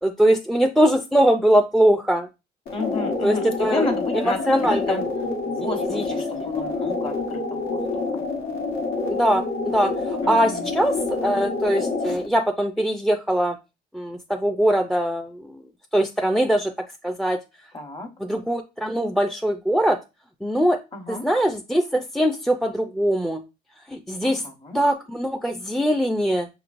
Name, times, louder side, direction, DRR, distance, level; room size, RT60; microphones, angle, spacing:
voice 1, 0.0-2.3 3.2-3.9 4.5-5.0 5.9-6.0 9.1-9.4 9.7-9.9 10.3-11.0 11.2-13.6 13.9-15.3 15.9-16.7 17.0-17.4 18.3-20.0 20.4-20.8 21.1-23.4 23.9-24.4 24.7-26.5, right 1 dB, ahead, 5 dB, 0.4 m, -21 dB
sound 1, 2.7-12.3, left 3 dB, 80° left, 1.3 m, -27 dB
voice 2, 2.7-5.0 5.4-7.8 10.2-10.7 17.7-18.1 20.9-21.3 24.2-24.8, left 3 dB, 30° left, 4 dB, 1.1 m, -32 dB
5.8 x 3.0 x 2.5 m, 0.26 s
cardioid pair, 110°, 17 cm